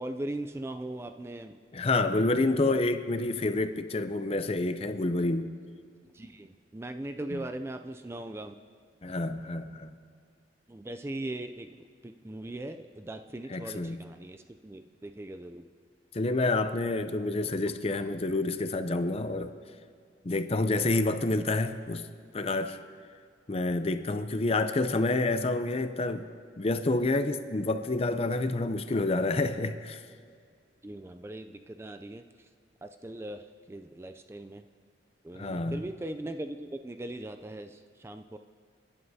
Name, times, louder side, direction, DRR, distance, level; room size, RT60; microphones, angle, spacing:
voice 1, 0.0-1.6 2.5-2.8 6.1-8.5 10.7-11.8 12.0-15.6 17.9-18.0 30.8-32.5 32.8-34.6 35.2-38.4, right 1 dB, 15° right, 8 dB, 0.3 m, -39 dB
voice 2, 1.7-5.5 7.3-7.4 9.0-9.9 13.5-14.0 16.1-19.5 20.2-22.1 22.3-22.8 23.5-26.3 26.6-30.0 35.3-35.8, left 2 dB, 35° left, 10 dB, 0.5 m, -28 dB
29.5 x 11.0 x 2.8 m, 2.1 s
head